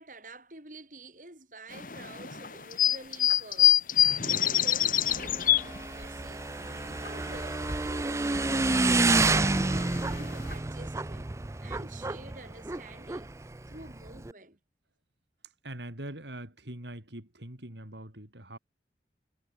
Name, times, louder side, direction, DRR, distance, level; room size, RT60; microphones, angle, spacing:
voice 1, 0.0-6.5 6.9-8.8 9.1-11.3 11.6-13.3 13.7-14.6, right 2 dB, 45° right, 7.2 m, -49 dB
sound 1, 1.7-6.3 6.6-7.7 8.0-10.5, left 10 dB, 50° left, 1.9 m, -27 dB
Motorcycle / Engine, 5.1-14.3, right 3 dB, 15° right, 0.4 m, -29 dB
voice 2, 15.6-18.6, right 1 dB, 80° right, 5.6 m, -42 dB
head